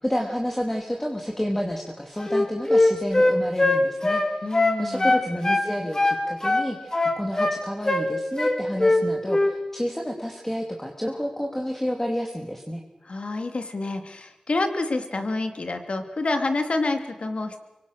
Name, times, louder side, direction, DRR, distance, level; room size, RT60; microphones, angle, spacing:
voice 1, 0.0-12.8, equal, 15° left, 1 dB, 2.9 m, -30 dB
Wind instrument woodwind instrument, 2.2-5.7 5.9-7.6 7.9-8.1 8.4-9.0 9.3-9.5, left 2 dB, 30° left, 3.5 m, -21 dB
voice 2, 4.4-5.1 13.0-17.6, left 2 dB, 65° left, 7 dB, 2.7 m, -28 dB
25.5 x 23.5 x 6.7 m, 1.1 s
wide cardioid pair, 65°, 2 cm